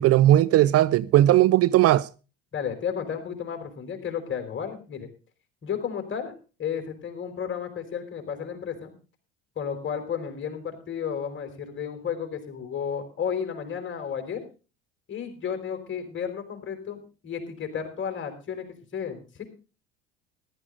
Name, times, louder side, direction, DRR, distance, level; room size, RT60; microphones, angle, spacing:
voice 1, 0.0-2.1, right 14 dB, 50° right, 0.6 m, -18 dB
voice 2, 2.5-5.1 5.6-8.9 9.6-14.4 15.1-19.4, left 7 dB, 40° left, 4.5 m, -33 dB
14.5 x 12.5 x 4.0 m
hypercardioid pair, 75°, 31 cm